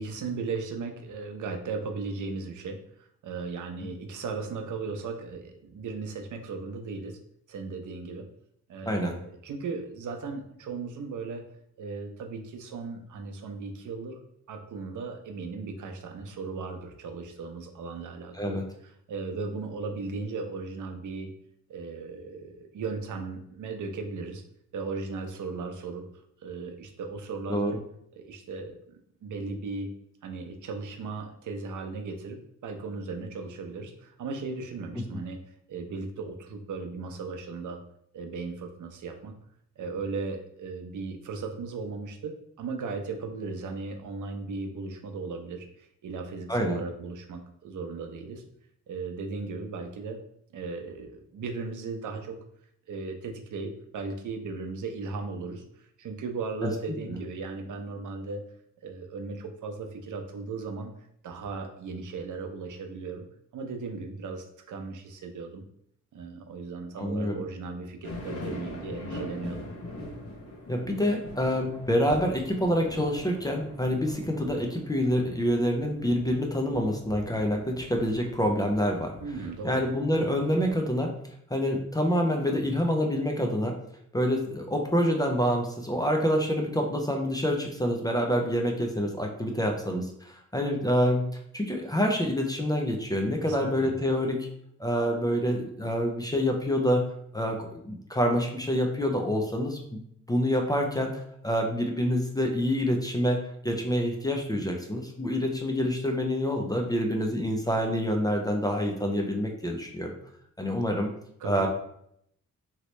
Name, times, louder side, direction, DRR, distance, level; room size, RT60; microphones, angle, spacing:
voice 1, 0.0-7.2 7.5-8.3 8.7-11.4 11.8-14.2 14.5-21.3 21.7-24.4 24.7-26.0 26.4-27.8 28.2-29.9 30.2-35.4 35.7-37.8 38.1-39.3 39.8-48.4 48.9-50.2 50.5-52.4 52.9-58.4 58.8-60.9 61.2-63.3 63.5-65.6 66.1-69.7 79.2-79.9 93.4-93.9 111.4-111.7, right 4 dB, 85° right, 4 dB, 0.6 m, -37 dB
voice 2, 8.8-9.1 18.3-18.6 27.5-27.8 46.5-46.8 56.6-56.7 57.1-57.2 67.0-67.4 70.7-79.1 79.6-81.1 81.5-83.7 84.1-91.2 91.5-94.5 94.8-97.0 97.3-100.0 100.3-101.1 101.4-110.1 110.6-111.1 111.4-111.7, equal, 15° left, 1 dB, 0.3 m, -27 dB
sound 1, 68.0-80.8, left 1 dB, 50° left, 1.0 m, -42 dB
3.0 x 2.8 x 3.0 m, 0.71 s
wide cardioid pair, 150°, 30 cm